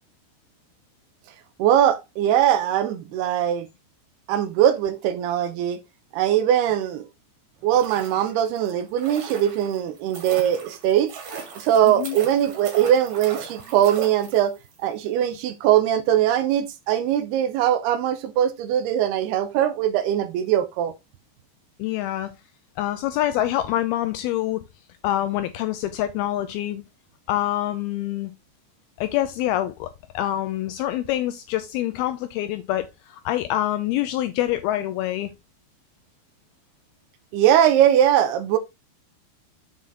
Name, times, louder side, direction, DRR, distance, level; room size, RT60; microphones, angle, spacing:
voice 1, 1.6-3.7 4.3-5.8 6.1-7.1 7.6-11.1 11.6-14.5 14.8-20.9 37.3-38.6, right 10 dB, 80° right, 2.7 m, -21 dB
sound 1, 7.6-14.7 15.0-15.1, right 6 dB, 65° right, 4.1 m, -39 dB
voice 2, 11.8-12.2 21.8-22.3 22.8-24.6 25.0-26.8 27.3-28.3 29.0-35.3, left 13 dB, 85° left, 2.2 m, -26 dB
7.7 x 5.6 x 3.7 m
omnidirectional pair, 4.9 m